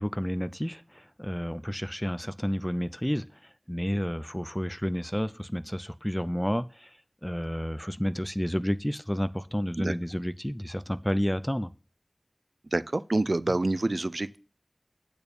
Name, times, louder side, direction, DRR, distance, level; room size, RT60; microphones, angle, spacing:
voice 1, 0.0-11.7, equal, 5° left, 0.5 m, -31 dB
voice 2, 12.7-14.4, right 2 dB, 70° right, 0.4 m, -27 dB
8.8 x 4.5 x 6.9 m
wide cardioid pair, 40°, 0 cm